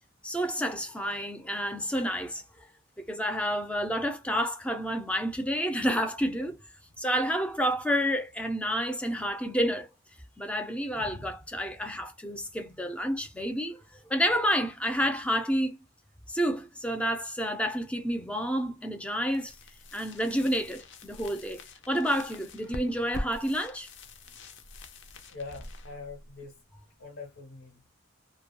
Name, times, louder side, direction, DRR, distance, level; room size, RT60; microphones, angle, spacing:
voice 1, 0.2-2.4 3.0-6.6 7.0-9.9 10.4-13.8 14.1-15.8 16.3-19.6 19.9-23.9, equal, 5° left, 0.4 m, -29 dB
sound 1, 19.3-27.0, left 1 dB, 60° left, 0.5 m, -44 dB
voice 2, 25.3-26.6 27.0-27.9, left 4 dB, 75° left, 0.8 m, -43 dB
2.2 x 2.1 x 2.8 m
head